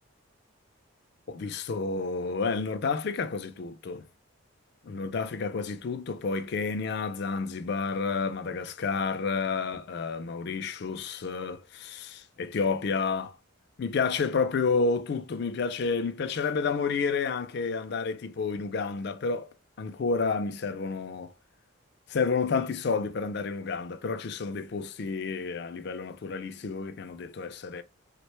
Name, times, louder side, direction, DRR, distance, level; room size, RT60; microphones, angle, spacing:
voice 1, 1.3-4.0 4.8-13.3 13.8-19.5 19.8-21.3 22.1-27.8, left 4 dB, 50° left, 0.4 m, -30 dB
3.4 x 2.1 x 3.0 m
head